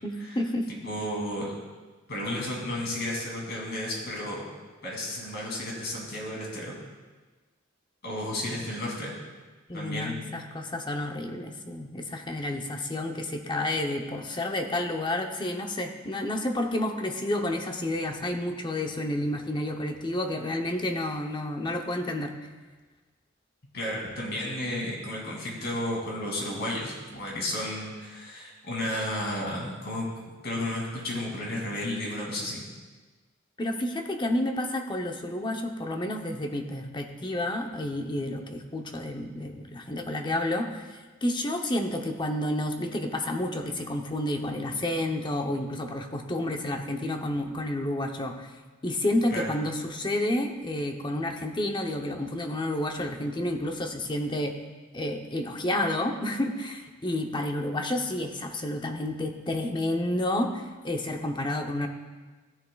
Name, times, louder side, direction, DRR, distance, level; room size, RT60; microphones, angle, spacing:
voice 1, 0.0-0.7 9.7-22.3 33.6-48.5 48.8-54.6 54.9-61.9, left 1 dB, 25° left, 4 dB, 0.8 m, -30 dB
voice 2, 0.8-1.6 2.1-4.4 4.8-6.7 8.0-9.1 9.7-10.1 23.7-30.1 30.4-32.6 49.3-49.5, left 1 dB, 55° left, -3 dB, 2.7 m, -32 dB
14.5 x 10.5 x 2.4 m, 1.3 s
head